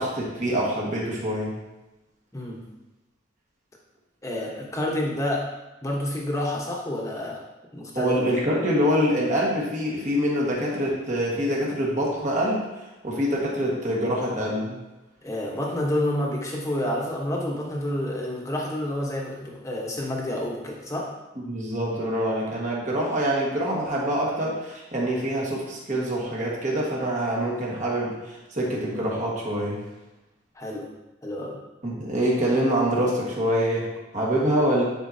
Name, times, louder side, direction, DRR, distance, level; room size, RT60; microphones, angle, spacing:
voice 1, 0.0-1.5 7.9-14.8 21.5-29.8 31.8-34.8, equal, 40° right, -4 dB, 1.6 m, -25 dB
voice 2, 2.3-2.6 4.2-5.5 5.8-7.4 7.7-8.2 15.2-21.1 30.5-30.9 31.2-31.6, left 1 dB, 15° left, -2 dB, 1.1 m, -29 dB
9.9 x 4.5 x 2.8 m, 1.0 s
head